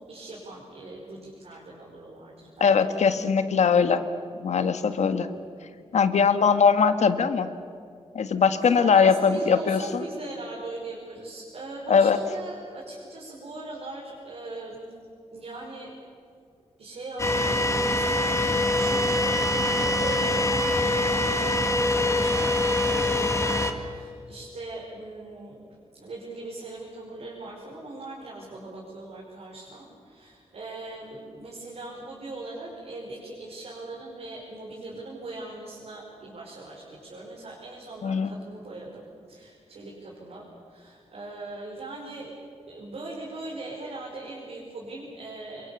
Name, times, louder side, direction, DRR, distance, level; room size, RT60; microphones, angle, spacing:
voice 1, 0.1-2.7 4.9-5.3 8.5-14.9 15.3-16.0 16.8-42.3 42.7-45.7, right 2 dB, 65° right, -4 dB, 5.4 m, -40 dB
voice 2, 2.6-4.0 4.4-5.3 5.9-7.5 8.1-10.0 11.9-12.2 38.0-38.3, left 6 dB, 90° left, 9 dB, 1.6 m, -21 dB
sound 1, 17.2-23.7, left 1 dB, 25° left, 2.0 m, -24 dB
27.5 x 24.0 x 7.2 m, 2.3 s
wide cardioid pair, 130°, 11 cm